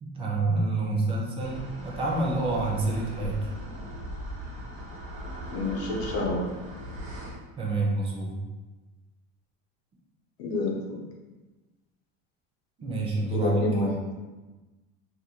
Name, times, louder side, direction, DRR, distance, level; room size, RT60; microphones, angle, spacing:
voice 1, 0.0-3.5 7.6-8.4 12.8-13.9, right 2 dB, 20° right, -2 dB, 0.3 m, -28 dB
sound 1, 1.4-7.4, equal, 70° right, 1.0 m, -39 dB
voice 2, 5.5-6.4 10.4-11.0 13.3-13.9, left 2 dB, 80° left, -1 dB, 0.7 m, -28 dB
2.5 x 2.2 x 2.8 m, 1.2 s
cardioid pair, 155°, 32 cm